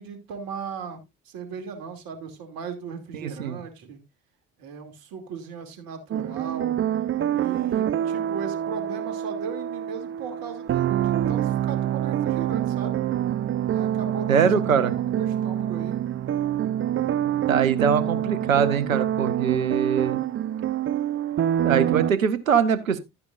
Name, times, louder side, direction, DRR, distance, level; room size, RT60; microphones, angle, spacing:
voice 1, 0.0-4.0 4.6-6.8 7.3-13.0 13.7-16.0, right 6 dB, 65° right, 2.6 m, -37 dB
sound 1, 6.1-22.1, right 11 dB, 35° right, 0.6 m, -26 dB
voice 2, 14.3-14.9 17.5-20.2 21.6-23.0, right 7 dB, 90° right, 0.8 m, -22 dB
12.0 x 9.4 x 2.5 m
figure-of-eight pair, 50°, 39 cm